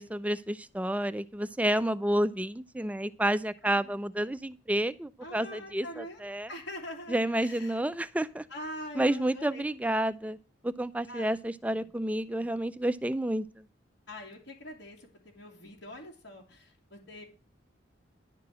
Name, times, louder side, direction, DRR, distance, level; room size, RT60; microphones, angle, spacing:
voice 1, 0.0-6.5 7.1-8.5 9.0-10.4 10.6-13.7, right 1 dB, 5° right, 13 dB, 0.4 m, -30 dB
voice 2, 3.6-4.0 5.2-7.8 8.5-9.6 11.1-11.3 11.7-11.8 14.1-17.2, left 1 dB, 65° left, -3 dB, 2.7 m, -44 dB
11.5 x 4.9 x 7.4 m, 0.33 s
head